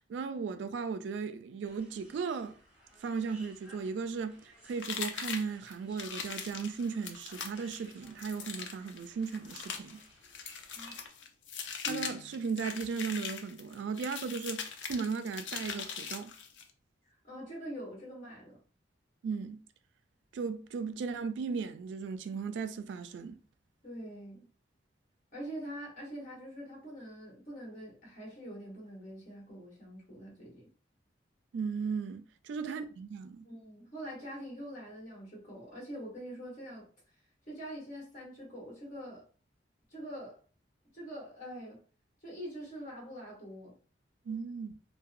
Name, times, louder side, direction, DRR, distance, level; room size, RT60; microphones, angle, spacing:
voice 1, 0.0-2.6 3.0-4.4 4.6-10.0 11.8-16.3 19.2-19.6 20.3-23.4 31.5-33.5 44.3-44.7, right 5 dB, 75° right, 0.3 m, -36 dB
sound 1, 1.6-11.1, right 1 dB, 10° right, 1.5 m, -59 dB
sound 2, 4.8-16.7, left 6 dB, 90° left, 0.4 m, -41 dB
sound 3, 11.8-12.9, left 2 dB, 10° left, 0.7 m, -45 dB
voice 2, 17.2-18.6 23.8-24.4 25.3-30.7 32.6-32.8 33.4-36.9 37.5-39.2 39.9-40.4 40.9-41.8 42.2-43.8, equal, 45° left, 1.4 m, -44 dB
2.7 x 2.2 x 2.4 m
head